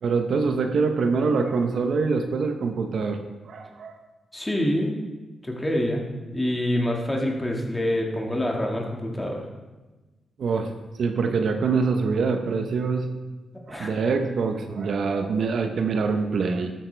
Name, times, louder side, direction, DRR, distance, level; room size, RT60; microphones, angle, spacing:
voice 1, 0.0-3.2 3.5-4.0 10.4-10.7 11.0-13.1 13.7-16.7, right 4 dB, 65° right, 5 dB, 0.9 m, -24 dB
voice 2, 4.3-5.0 5.4-6.0 6.3-9.5 13.7-13.9, left 1 dB, 15° left, 0 dB, 2.0 m, -26 dB
12.5 x 8.7 x 3.4 m, 1.2 s
cardioid pair, 85°, 0 cm